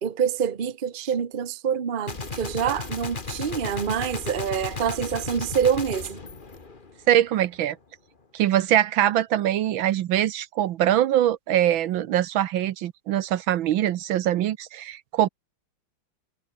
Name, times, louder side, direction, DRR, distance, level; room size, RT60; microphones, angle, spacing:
voice 1, 0.0-6.2, right 8 dB, 35° right, 0.9 m, -26 dB
Gunshot gunfire, 2.1-7.3, left 4 dB, 25° left, 1.8 m, -35 dB
voice 2, 7.1-7.8 8.3-15.3, right 12 dB, 70° right, 1.5 m, -23 dB
omnidirectional pair, 2.4 m